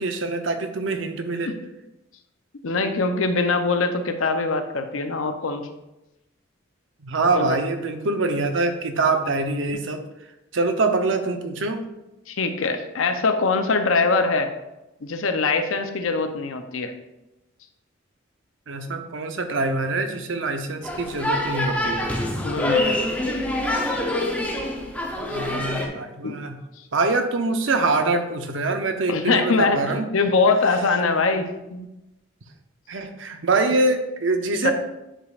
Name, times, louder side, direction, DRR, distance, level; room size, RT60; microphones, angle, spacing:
voice 1, 0.0-1.5 7.0-10.0 10.5-11.9 18.7-22.1 25.3-26.6 26.9-30.1 32.9-34.7, right 3 dB, 75° right, 6 dB, 0.8 m, -24 dB
voice 2, 2.6-5.7 7.3-7.6 12.3-14.5 15.0-16.9 21.2-21.3 22.4-22.9 26.2-26.3 29.1-29.8 30.1-31.9 34.6-34.7, left 4 dB, 90° left, 7 dB, 0.7 m, -22 dB
sound 1, 20.8-25.9, left 1 dB, 5° left, 0.7 m, -25 dB
9.9 x 5.1 x 2.5 m, 0.95 s
head